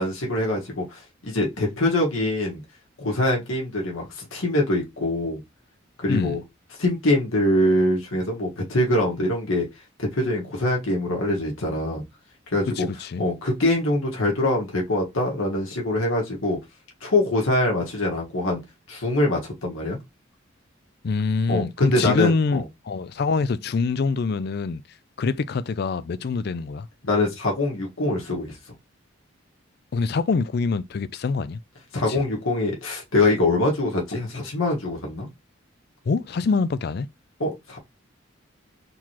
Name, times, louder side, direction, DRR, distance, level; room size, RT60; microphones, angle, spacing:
voice 1, 0.0-2.6 3.0-5.4 6.0-6.4 6.8-9.7 10.0-12.0 12.5-12.9 13.2-16.6 17.0-18.6 18.9-20.0 21.5-22.6 27.0-28.6 31.9-35.3 37.4-37.8, left 1 dB, 90° left, 1.4 m, -24 dB
voice 2, 12.8-13.2 21.0-24.8 25.2-26.9 29.9-31.6 32.1-32.2 36.0-37.1, left 4 dB, 50° left, 0.4 m, -25 dB
4.7 x 3.8 x 2.9 m
head